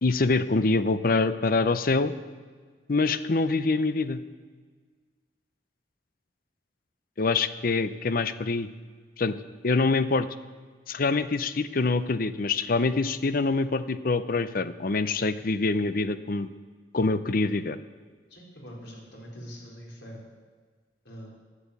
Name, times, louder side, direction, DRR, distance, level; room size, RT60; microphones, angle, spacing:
voice 1, 0.0-2.1 2.9-4.2 7.2-8.7 9.2-9.3 9.6-10.3 10.9-16.5 16.9-17.8, left 3 dB, 55° left, 12 dB, 0.6 m, -25 dB
voice 2, 18.3-20.3 21.0-21.3, equal, 90° left, -2 dB, 4.1 m, -44 dB
11.0 x 9.3 x 8.3 m, 1.5 s
head